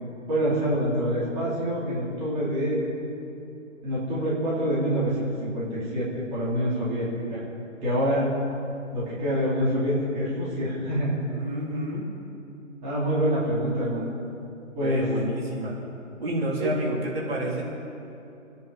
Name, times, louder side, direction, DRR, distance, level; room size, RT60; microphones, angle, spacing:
voice 1, 0.3-2.9 3.8-7.4 7.8-8.2 8.9-11.1 12.8-14.1 14.8-15.0 16.6-16.7, equal, 15° right, -8 dB, 3.7 m, -26 dB
voice 2, 11.3-12.1 14.8-15.8 16.2-17.6, right 1 dB, 50° right, -4 dB, 3.8 m, -29 dB
25.5 x 10.5 x 5.4 m, 2.8 s
figure-of-eight pair, 150°, 39 cm